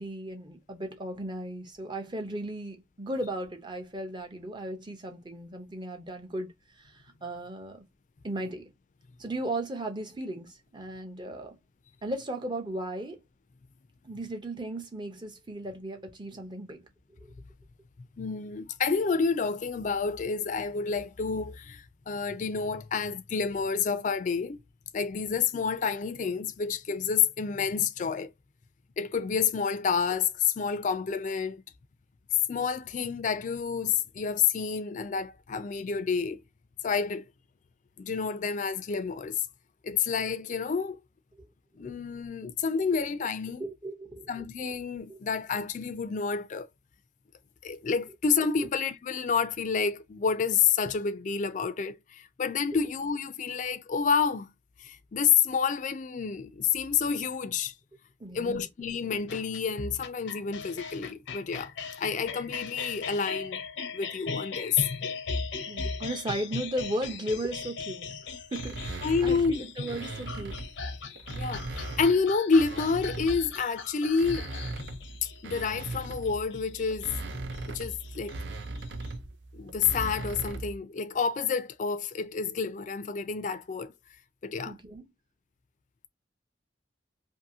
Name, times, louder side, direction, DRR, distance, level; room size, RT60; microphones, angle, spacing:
voice 1, 0.0-6.5 6.8-7.8 8.2-8.7 9.2-11.6 12.0-13.2 14.0-16.8 43.6-44.4 45.1-45.2 48.6-48.7 58.2-58.7 65.7-68.1 68.5-70.5 84.6-85.0, right 1 dB, 25° right, 0.6 m, -36 dB
voice 2, 18.2-24.6 24.9-28.3 29.0-31.6 32.5-36.4 36.8-37.2 38.0-39.5 39.8-41.0 41.8-43.7 44.3-46.7 47.6-54.5 54.8-57.7 58.3-61.7 62.0-63.6 63.9-64.8 69.0-69.6 71.4-74.5 75.2-77.1 77.7-78.4 79.5-83.9 84.4-84.8, left 6 dB, 45° left, 0.4 m, -29 dB
sound 1, 59.3-79.1, left 5 dB, 90° left, 0.6 m, -39 dB
sound 2, 68.5-70.7 71.2-73.6 74.0-80.8, right 2 dB, 70° right, 0.5 m, -38 dB
2.7 x 2.6 x 2.6 m
head